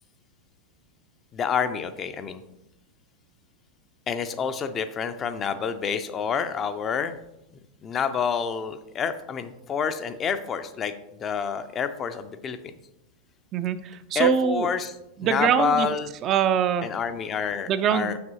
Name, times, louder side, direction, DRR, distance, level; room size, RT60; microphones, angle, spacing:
voice 1, 1.3-2.4 4.1-7.2 7.8-10.9 11.2-12.7 14.1-14.9 15.2-16.1 16.8-18.2, left 6 dB, 25° left, 10 dB, 0.5 m, -28 dB
voice 2, 13.5-14.7 15.2-15.9 16.2-16.9 17.7-18.2, right 8 dB, 30° right, 10 dB, 0.4 m, -23 dB
7.1 x 5.9 x 2.9 m, 0.88 s
figure-of-eight pair, 90°, 0 cm